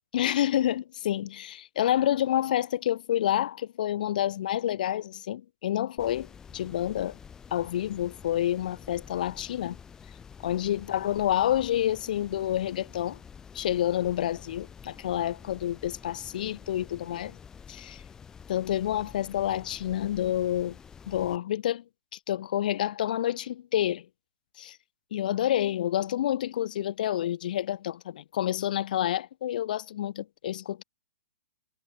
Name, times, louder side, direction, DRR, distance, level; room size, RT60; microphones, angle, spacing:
voice 1, 0.1-6.3 6.5-7.2 7.5-9.8 10.4-13.2 13.5-17.4 17.7-18.0 18.5-20.8 21.1-21.8 22.3-24.1 24.6-24.8 25.1-30.8, left 12 dB, 35° left, 0.4 m, -28 dB
sound 1, 6.0-21.4, left 7 dB, 10° left, 2.1 m, -49 dB
hypercardioid pair, 175°, 8 cm